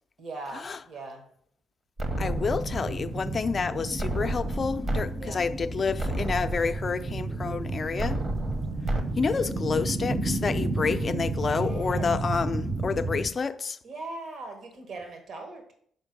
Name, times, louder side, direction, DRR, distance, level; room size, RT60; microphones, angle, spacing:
voice 1, 0.2-1.2 5.2-5.4 10.9-11.1 11.5-12.1 13.8-15.7, right 3 dB, 60° right, 1.4 m, -40 dB
sound 1, 2.0-3.0 4.0-5.0 5.5-5.6 6.0-7.0 8.0-9.0, right 1 dB, 40° right, 1.1 m, -31 dB
sound 2, 2.1-13.3, right 2 dB, 10° right, 0.6 m, -32 dB
voice 2, 2.2-8.2 9.2-13.8, left 5 dB, 40° left, 0.4 m, -29 dB
6.3 x 4.4 x 5.3 m
cardioid pair, 90°, 0 cm